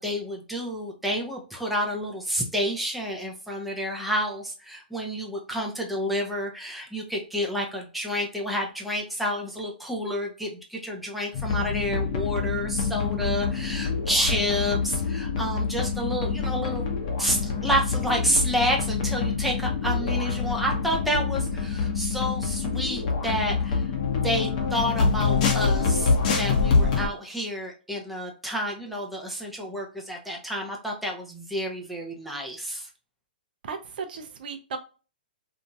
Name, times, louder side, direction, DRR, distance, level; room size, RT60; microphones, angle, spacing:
voice 1, 0.0-16.8 17.2-23.8 24.2-32.9, equal, ahead, -1 dB, 0.7 m, -29 dB
sound 1, 11.3-27.1, left 5 dB, 50° left, 0.8 m, -26 dB
voice 2, 33.6-34.8, right 5 dB, 60° right, 6 dB, 0.5 m, -35 dB
2.8 x 2.6 x 2.2 m, 0.35 s
hypercardioid pair, 130°, 5 cm